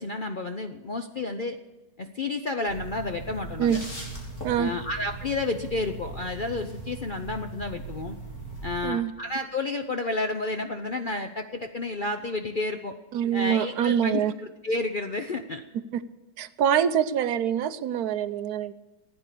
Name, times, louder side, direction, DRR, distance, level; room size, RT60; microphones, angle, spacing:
voice 1, 0.0-1.6 2.0-3.8 4.6-8.2 8.6-12.9 13.3-15.6, left 2 dB, 75° left, 6 dB, 0.4 m, -31 dB
sound 1, 2.7-8.9, right 2 dB, 40° left, 3.6 m, -39 dB
voice 2, 13.1-14.3 15.9-16.0 16.4-18.7, right 9 dB, 65° right, 12 dB, 1.1 m, -25 dB
15.5 x 9.7 x 6.7 m, 1.1 s
omnidirectional pair, 1.9 m